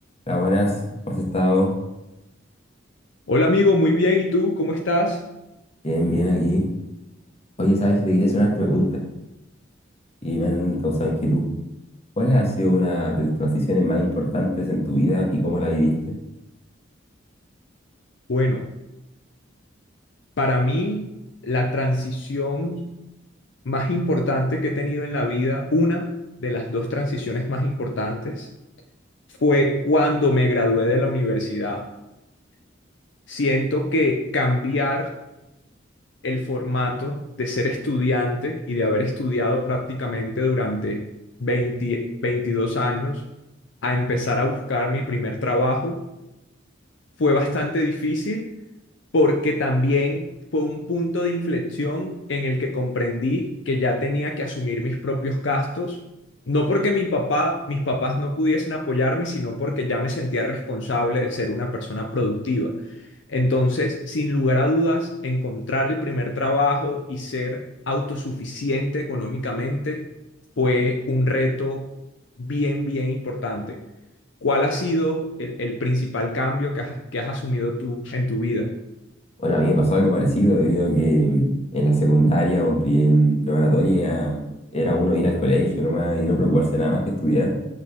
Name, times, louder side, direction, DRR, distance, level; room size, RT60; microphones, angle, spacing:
voice 1, 0.3-0.7 1.1-1.7 5.8-6.6 7.6-9.0 10.2-11.5 12.2-16.1 79.4-84.4 84.7-87.5, equal, 35° left, -1 dB, 1.5 m, -20 dB
voice 2, 3.3-5.2 18.3-18.7 20.4-21.1 21.4-22.9 23.6-28.5 29.4-31.9 33.3-35.1 36.2-41.0 41.4-43.2 43.8-46.0 47.2-48.5 49.1-50.3 50.5-56.0 56.5-62.8 63.3-70.1 70.6-71.9 72.4-73.8 74.4-78.7, left 1 dB, 65° left, 2 dB, 0.6 m, -23 dB
6.5 x 6.3 x 3.6 m, 0.95 s
head